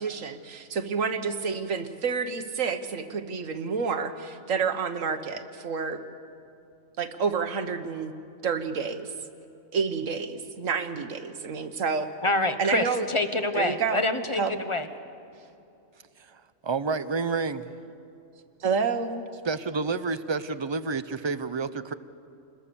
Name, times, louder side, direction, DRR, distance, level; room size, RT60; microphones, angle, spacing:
voice 1, 0.0-6.0 7.0-8.1 8.4-9.1 9.7-12.1 12.6-13.1 13.5-14.0 14.4-14.5 18.6-19.2, right 5 dB, 70° right, 9 dB, 1.6 m, -29 dB
voice 2, 12.2-14.9, left 2 dB, 25° left, 8 dB, 1.1 m, -26 dB
voice 3, 16.2-17.7 19.4-21.9, right 4 dB, 35° right, 13 dB, 0.4 m, -29 dB
27.5 x 21.0 x 7.0 m, 2.8 s
omnidirectional pair, 1.4 m